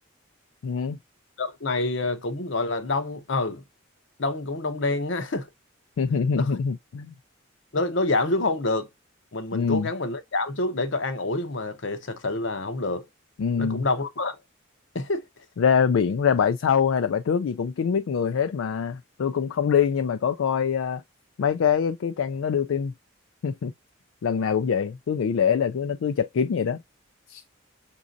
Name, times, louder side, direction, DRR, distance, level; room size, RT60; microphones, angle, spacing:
voice 1, 0.6-1.0 6.0-7.1 9.5-9.9 13.4-13.9 15.6-21.0 21.4-22.9 23.4-23.7 24.2-26.8 27.3-27.4, left 7 dB, 80° left, 0.4 m, -24 dB
voice 2, 1.4-3.6 4.2-5.5 6.3-6.6 7.7-8.9 9.3-13.1 13.6-14.4 14.9-15.2, left 2 dB, 65° left, 0.8 m, -27 dB
6.0 x 2.7 x 2.5 m
head